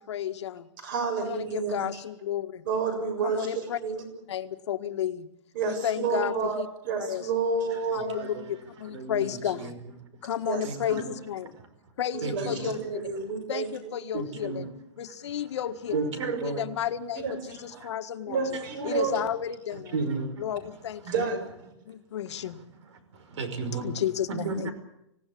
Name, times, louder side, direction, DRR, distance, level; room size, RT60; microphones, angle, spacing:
voice 1, 0.0-0.7 1.2-2.6 3.2-3.8 4.3-5.3 5.7-6.7 7.0-7.3 7.9-9.7 10.2-11.5 12.0-13.1 13.5-14.7 15.0-16.0 16.4-18.4 18.8-19.9 20.4-21.2 21.9-22.6 23.8-24.7, left 10 dB, 70° left, 9 dB, 1.7 m, -32 dB
voice 2, 0.8-1.9 2.7-4.0 5.5-8.3 10.4-11.0 12.1-13.7 17.2-17.8 18.3-19.2 21.1-21.5, right 5 dB, 45° right, 8 dB, 6.9 m, -30 dB
voice 3, 7.9-8.5 8.9-9.7 10.1-10.3 10.6-11.1 12.2-12.7 14.1-14.7 15.9-16.6 18.5-19.0 19.9-20.5 23.1-24.0 24.3-24.7, right 4 dB, 75° right, 10 dB, 5.6 m, -33 dB
26.0 x 17.5 x 8.6 m, 0.81 s
supercardioid pair, 170°, 15 cm